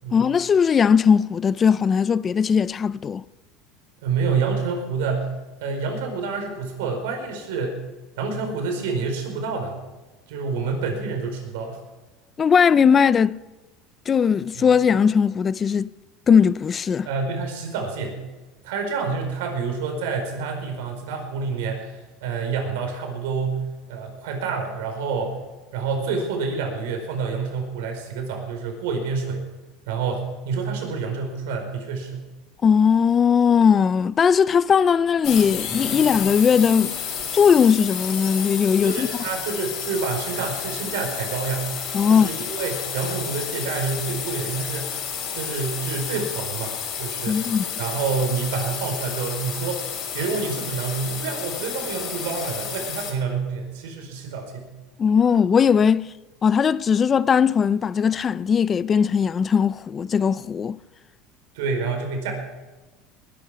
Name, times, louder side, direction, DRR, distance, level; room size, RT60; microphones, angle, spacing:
voice 1, 0.1-3.2 12.4-13.4 14.1-15.9 16.3-17.1 32.6-36.9 37.3-39.1 41.9-42.3 47.3-47.6 55.0-56.1 56.4-60.8, left 7 dB, 25° left, 0.4 m, -19 dB
voice 2, 4.0-5.3 5.6-7.8 8.2-9.8 10.3-11.8 14.5-14.6 17.0-18.2 18.6-25.4 25.7-29.4 29.9-32.2 38.8-44.9 45.3-49.8 50.1-54.7 61.5-62.3, right 5 dB, 85° right, 4.7 m, -28 dB
sound 1, 35.2-53.1, left 7 dB, 45° left, 4.6 m, -31 dB
20.5 x 11.0 x 5.0 m
supercardioid pair, 150°, 0 cm